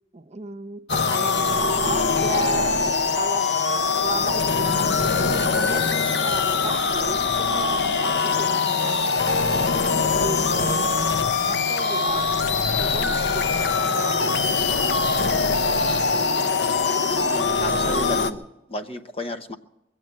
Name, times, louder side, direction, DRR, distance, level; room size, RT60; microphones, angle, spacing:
voice 1, 0.1-2.8 3.2-3.5 4.0-14.4, right 3 dB, 40° right, 10 dB, 0.9 m, -35 dB
sound 1, 0.9-18.3, left 4 dB, 70° left, 0.8 m, -22 dB
voice 2, 16.9-18.4 18.7-19.6, left 1 dB, 35° left, 8 dB, 0.8 m, -33 dB
23.0 x 8.1 x 7.6 m, 0.93 s
head